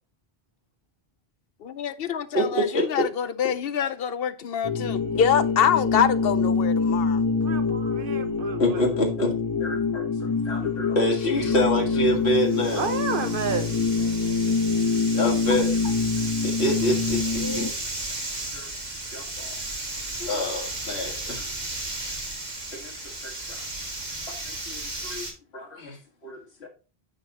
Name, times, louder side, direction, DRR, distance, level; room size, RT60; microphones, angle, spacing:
voice 1, 1.6-7.2, left 8 dB, 70° left, 0.8 m, -25 dB
voice 2, 2.3-2.9 8.6-9.3 9.6-12.9 15.1-15.7 16.2-17.7 18.5-18.7 19.1-19.6 20.2-21.5 22.7-23.6 24.3-25.3 25.5-26.7, left 1 dB, 85° left, 1.9 m, -27 dB
sound 1, 4.6-17.7, left 4 dB, 20° left, 0.8 m, -25 dB
voice 3, 7.4-8.8 12.7-13.7, right 5 dB, 60° right, 1.1 m, -30 dB
sound 2, 12.1-25.3, right 2 dB, 45° right, 1.7 m, -34 dB
9.0 x 5.3 x 2.8 m
omnidirectional pair, 1.0 m